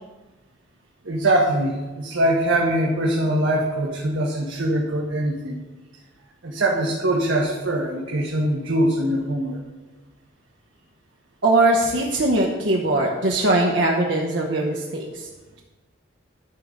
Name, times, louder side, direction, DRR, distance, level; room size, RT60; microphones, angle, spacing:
voice 1, 1.0-5.6 6.4-9.6, right 1 dB, 90° right, -3 dB, 1.2 m, -22 dB
voice 2, 11.4-15.3, right 2 dB, 65° right, -1 dB, 0.9 m, -21 dB
11.5 x 3.9 x 6.4 m, 1.2 s
head